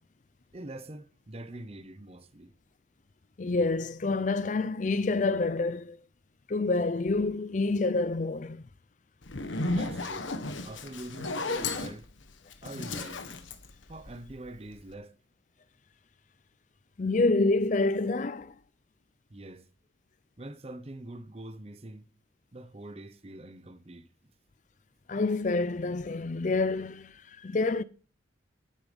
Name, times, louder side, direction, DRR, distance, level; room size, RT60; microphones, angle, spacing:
voice 1, 0.5-2.5 9.7-10.3 10.6-12.1 12.6-13.3 13.9-15.1 19.3-19.7 20.4-22.1 22.5-24.1, right 1 dB, 30° right, 0.7 m, -44 dB
voice 2, 3.4-6.0 6.5-8.6 9.3-9.4 17.0-18.5 25.1-27.8, left 3 dB, 40° left, 0.5 m, -27 dB
Zipper (clothing), 9.2-14.5, left 2 dB, 85° left, 1.3 m, -34 dB
10.5 x 9.6 x 5.3 m
head